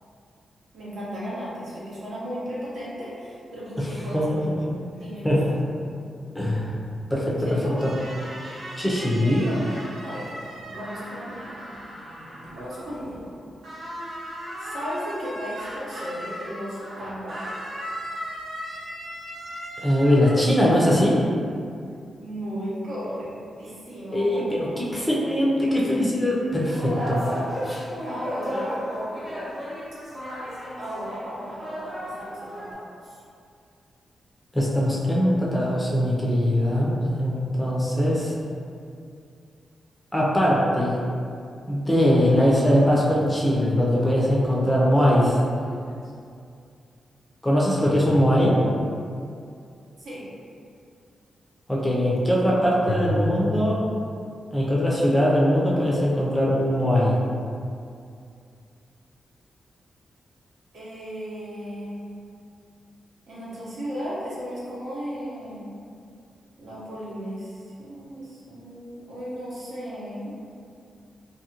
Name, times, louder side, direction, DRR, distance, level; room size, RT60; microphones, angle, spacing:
voice 1, 0.7-4.4 5.0-5.3 7.4-7.8 9.4-9.7 10.0-11.5 12.5-13.4 14.6-17.4 22.2-23.3 23.6-24.7 24.9-25.7 28.0-28.8 30.8-33.2 50.0-50.3 60.7-62.0 63.3-65.6 66.6-70.3, equal, 75° right, -9 dB, 0.9 m, -35 dB
voice 2, 6.3-6.7 7.1-7.6 7.8-7.9 8.8-9.5 19.8-21.2 24.1-27.2 34.5-38.3 40.1-41.0 41.7-45.4 47.4-48.6 51.7-53.8 54.5-57.2, equal, 5° left, -6 dB, 0.4 m, -21 dB
sound 1, 7.8-13.4 13.6-21.0, equal, 55° right, 0.6 m, -38 dB
sound 2, 26.5-32.7, equal, 15° right, 0.8 m, -33 dB
sound 3, 41.4-41.5 42.4-46.1 47.8-49.0 52.8-53.5, left 1 dB, 75° left, 0.4 m, -33 dB
2.6 x 2.4 x 2.8 m, 2.4 s
wide cardioid pair, 135°, 0 cm